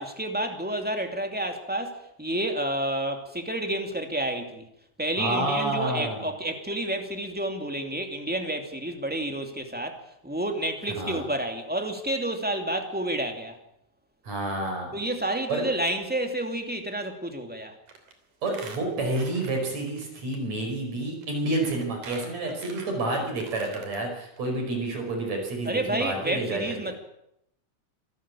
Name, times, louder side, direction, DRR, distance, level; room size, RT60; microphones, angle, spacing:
voice 1, 0.0-4.7 5.0-13.6 14.9-17.8 25.6-26.9, right 1 dB, 5° right, 5 dB, 2.1 m, -30 dB
voice 2, 5.2-6.3 11.0-11.2 14.2-15.0 15.5-15.6 18.4-27.0, right 2 dB, 65° right, 2 dB, 6.6 m, -29 dB
Squeak, 17.9-18.1 18.4-20.0 20.3-20.4 21.2-21.3 21.6-24.0 24.4-24.5 24.7-24.8, right 5 dB, 90° right, 4.5 m, -44 dB
26.0 x 13.5 x 8.6 m, 0.79 s
omnidirectional pair, 3.4 m